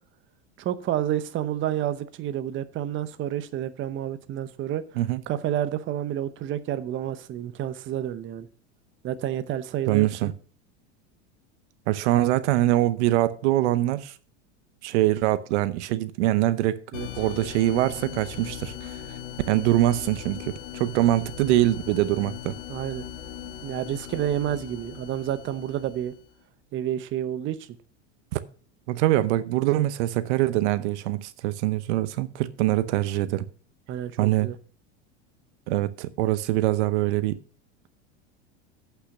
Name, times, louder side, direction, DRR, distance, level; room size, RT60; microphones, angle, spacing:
voice 1, 0.6-4.8 5.3-8.5 9.0-10.3 16.9-17.1 22.7-23.0 23.6-26.1 26.7-27.7 33.9-34.6, right 11 dB, 35° right, 0.8 m, -29 dB
voice 2, 9.9-10.3 11.9-14.1 14.8-16.8 17.2-19.0 19.5-22.5 28.3-28.4 28.9-33.5 34.2-34.5 35.7-37.4, right 15 dB, 75° right, 0.8 m, -23 dB
sound 1, 16.9-26.3, left 10 dB, 75° left, 1.8 m, -39 dB
8.4 x 5.7 x 6.6 m
supercardioid pair, 120°, 35 cm